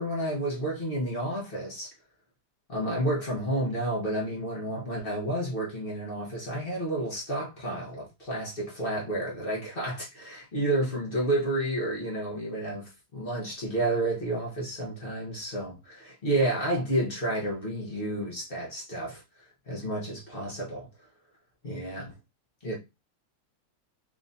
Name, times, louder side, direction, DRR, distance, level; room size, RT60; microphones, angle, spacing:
voice 1, 0.0-1.9 2.7-19.2 19.7-20.9 21.6-22.1 22.6-22.8, right 1 dB, 35° left, 0.9 m, -30 dB
3.7 x 3.6 x 2.6 m
omnidirectional pair, 2.4 m